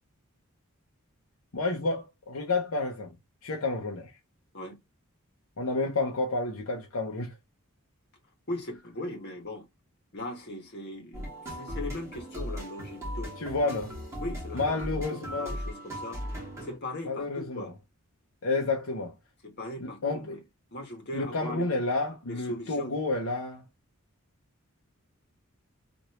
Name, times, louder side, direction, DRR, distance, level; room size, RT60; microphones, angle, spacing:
voice 1, 1.5-3.1 3.4-4.1 5.6-7.3 13.4-13.9 14.5-15.5 17.1-17.7 18.4-19.2 19.8-20.4 21.1-23.6, left 3 dB, 70° left, 0.7 m, -30 dB
voice 2, 8.5-9.6 10.1-13.8 14.2-16.2 16.6-17.7 19.4-20.4 20.7-21.7 22.3-23.0, left 1 dB, 50° left, 1.2 m, -39 dB
sound 1, 11.1-16.8, equal, 15° right, 1.4 m, -37 dB
3.1 x 2.6 x 2.9 m
head